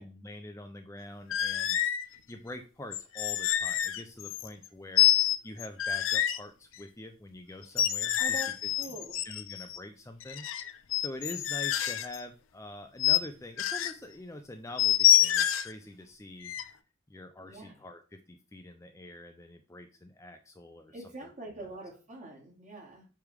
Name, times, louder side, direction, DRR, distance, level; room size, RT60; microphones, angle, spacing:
voice 1, 0.0-9.0 9.2-16.5 17.1-21.0 21.6-21.7, left 1 dB, 15° left, 5 dB, 0.5 m, -45 dB
sound 1, 1.3-2.1 2.9-4.7 5.0-6.4 7.6-9.8 10.2-12.2 13.0-13.2 13.6-13.9 14.8-15.7 16.4-16.7, left 12 dB, 80° left, 0.5 m, -27 dB
voice 2, 8.2-8.5 8.8-9.2 17.4-17.8 20.9-23.1, right 1 dB, 40° right, -2 dB, 2.3 m, -44 dB
8.0 x 3.4 x 3.4 m, 0.34 s
head